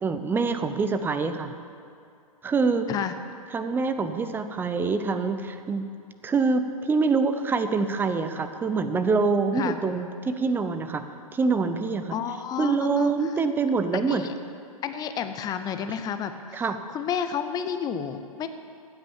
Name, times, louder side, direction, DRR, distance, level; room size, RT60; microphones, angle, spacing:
voice 1, 0.0-1.5 2.4-2.9 3.5-5.9 6.2-11.0 11.3-12.1 12.6-14.3 16.5-16.8, right 4 dB, 10° right, 9 dB, 0.7 m, -25 dB
voice 2, 12.1-13.1 14.1-14.3 14.8-16.6 16.9-18.5, left 8 dB, 20° left, 9 dB, 0.8 m, -30 dB
15.0 x 9.0 x 7.2 m, 2.4 s
figure-of-eight pair, 110°, 19 cm